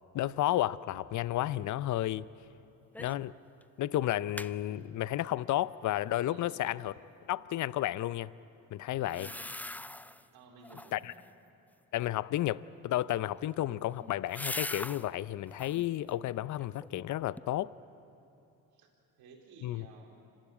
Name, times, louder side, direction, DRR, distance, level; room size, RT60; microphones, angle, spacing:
voice 1, 0.1-2.3 3.0-3.3 3.8-6.9 7.3-8.3 8.7-9.3 10.9-11.1 11.9-17.7 19.6-19.9, left 14 dB, 55° left, 18 dB, 0.6 m, -32 dB
sound 1, 2.9-3.3 3.6-3.7 4.0-4.5 9.0-10.2 10.6-11.1 13.1-15.1 15.5-15.9 16.4-17.0 17.4-17.5, left 1 dB, 5° left, 0.4 m, -42 dB
voice 2, 6.2-6.6 9.0-9.4 10.3-11.1 18.7-18.9 19.2-20.2, right 4 dB, 80° right, 0 dB, 3.8 m, -55 dB
26.5 x 15.0 x 8.7 m, 2.8 s
supercardioid pair, 75°, 37 cm